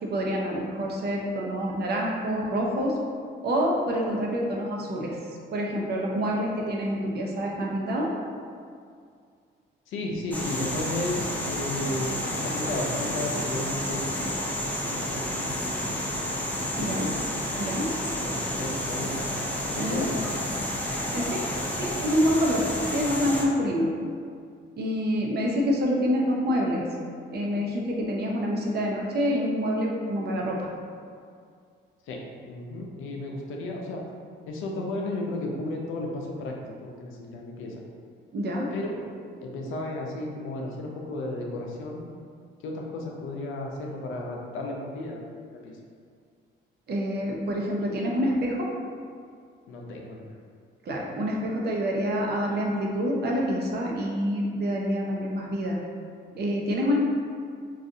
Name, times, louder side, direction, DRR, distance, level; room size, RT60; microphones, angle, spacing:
voice 1, 0.0-3.0 3.4-5.2 5.5-8.1 16.8-17.1 17.6-17.9 19.8-20.0 20.8-22.6 22.9-23.9 24.7-26.9 27.3-30.7 38.3-38.7 46.9-48.7 50.8-55.8 56.4-57.0, equal, 55° right, -1 dB, 0.7 m, -27 dB
voice 2, 9.9-12.2 12.4-14.4 14.8-15.6 15.9-16.1 16.7-17.1 18.2-19.2 19.7-20.3 32.1-32.2 32.4-34.0 34.5-37.8 38.7-39.0 39.4-42.1 42.6-45.2 45.6-45.7 49.7-50.2, left 2 dB, 85° left, 0 dB, 0.5 m, -34 dB
sound 1, 10.3-23.5, equal, 10° left, 0.5 m, -30 dB
3.9 x 2.4 x 2.6 m, 2.2 s
cardioid pair, 90°, 20 cm